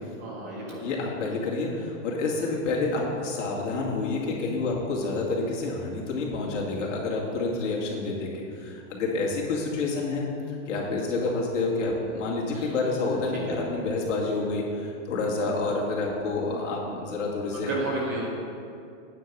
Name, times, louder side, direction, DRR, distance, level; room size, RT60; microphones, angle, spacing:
voice 1, 0.2-0.9 12.5-12.8 13.5-13.6 17.5-18.3, right 2 dB, 15° right, -4 dB, 0.4 m, -32 dB
voice 2, 0.8-10.2 10.7-17.7, left 3 dB, 75° left, -3 dB, 2.4 m, -28 dB
9.1 x 4.8 x 7.4 m, 2.4 s
supercardioid pair, 180°, 36 cm